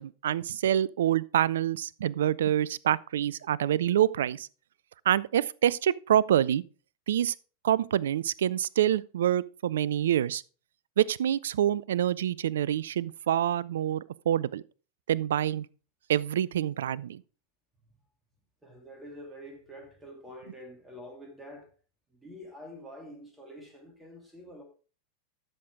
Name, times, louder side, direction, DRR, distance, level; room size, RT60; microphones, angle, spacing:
voice 1, 0.0-4.5 5.1-6.6 7.1-7.3 7.6-10.4 11.0-14.6 15.1-15.7 16.1-17.2, right 11 dB, 60° right, 0.3 m, -26 dB
voice 2, 18.6-21.7 22.1-24.6, equal, 10° right, 2.8 m, -47 dB
12.5 x 6.6 x 3.6 m
figure-of-eight pair, 90°, 0 cm